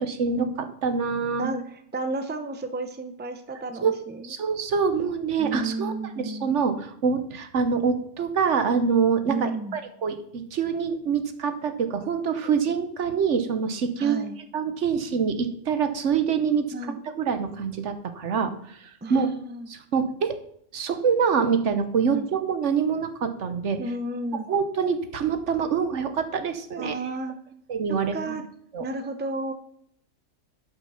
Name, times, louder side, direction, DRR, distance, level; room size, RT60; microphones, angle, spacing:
voice 1, 0.0-1.5 3.8-3.9 4.2-14.2 14.5-16.6 17.2-18.8 19.1-19.3 19.7-20.4 20.7-23.8 24.5-26.9 27.7-28.4 28.7-28.8, right 6 dB, 70° right, 8 dB, 1.2 m, -25 dB
voice 2, 1.4-4.3 5.4-6.6 9.3-9.8 14.0-14.4 16.7-17.0 19.0-19.7 22.1-22.3 23.8-24.5 26.8-27.4 28.1-28.4 28.8-29.5, right 2 dB, 10° right, 8 dB, 0.6 m, -32 dB
12.0 x 6.2 x 5.6 m, 0.69 s
omnidirectional pair, 1.3 m